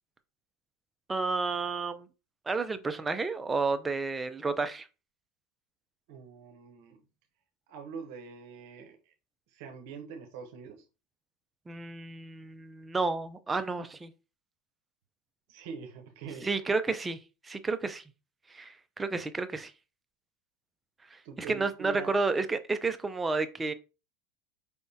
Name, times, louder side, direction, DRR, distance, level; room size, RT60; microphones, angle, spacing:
voice 1, 1.1-2.1 2.5-4.9 11.7-14.1 16.4-17.2 17.4-18.0 18.5-19.7 21.1-23.7, right 3 dB, 15° right, 0.4 m, -31 dB
voice 2, 6.1-7.0 7.7-9.1 9.5-10.8 15.5-16.7 21.2-22.2, right 6 dB, 65° right, 0.8 m, -44 dB
4.8 x 3.4 x 2.7 m
supercardioid pair, 140°, 0 cm